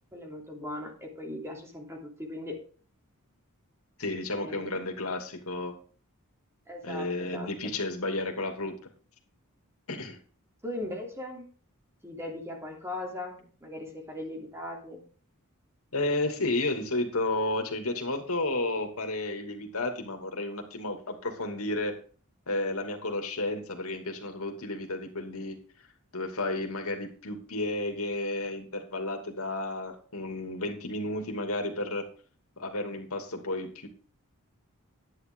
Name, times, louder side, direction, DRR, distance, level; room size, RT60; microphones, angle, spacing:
voice 1, 0.1-2.6 4.4-4.9 6.7-7.7 10.6-11.5 12.0-15.0, left 1 dB, 10° right, 1 dB, 3.1 m, -39 dB
voice 2, 4.0-5.8 6.8-8.8 9.9-10.2 15.9-21.9 22.5-25.6 26.1-32.0 32.6-33.9, left 2 dB, 70° left, 4 dB, 2.6 m, -32 dB
10.5 x 10.5 x 3.8 m, 0.40 s
head